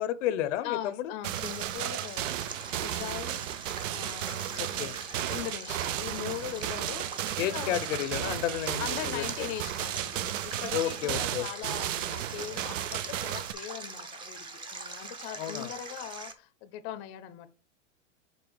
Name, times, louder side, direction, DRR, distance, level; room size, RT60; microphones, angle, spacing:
voice 1, 0.0-1.1 4.6-4.9 7.4-9.2 10.7-11.5 15.4-15.7, left 12 dB, 75° left, 0.6 m, -31 dB
voice 2, 0.6-7.8 8.8-17.5, left 11 dB, 35° left, 0.5 m, -40 dB
sound 1, 1.2-13.5, right 13 dB, 80° right, 0.6 m, -34 dB
Stream, 1.3-16.3, right 3 dB, 15° right, 0.5 m, -43 dB
5.3 x 4.0 x 4.7 m
supercardioid pair, 145°, 37 cm